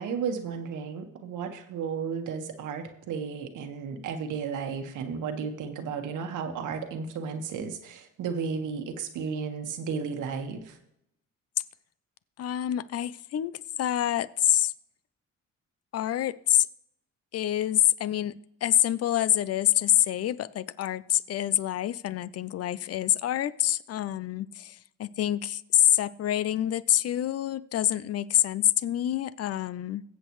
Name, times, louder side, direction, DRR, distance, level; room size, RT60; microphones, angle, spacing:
voice 1, 0.0-10.8, right 6 dB, 85° right, 6 dB, 1.5 m, -33 dB
voice 2, 12.4-14.7 15.9-16.7 17.3-30.0, left 12 dB, 55° left, 17 dB, 0.6 m, -26 dB
21.5 x 8.0 x 3.2 m, 0.80 s
cardioid pair, 90°, 30 cm